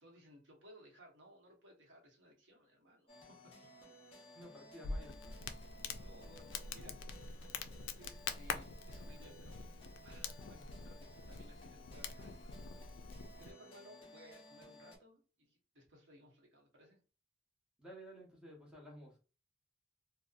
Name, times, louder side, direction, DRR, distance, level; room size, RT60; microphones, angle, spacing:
voice 1, 0.0-3.7 6.0-7.1 8.0-9.7 10.0-17.0, equal, 85° right, 0 dB, 0.9 m, -61 dB
sound 1, 3.1-15.0, left 1 dB, 30° left, 0.7 m, -58 dB
voice 2, 4.3-5.5 17.8-19.2, equal, 5° right, -2 dB, 0.8 m, -54 dB
Crackle, 4.8-13.5, left 5 dB, 85° left, 0.3 m, -45 dB
2.7 x 2.1 x 2.3 m, 0.34 s
head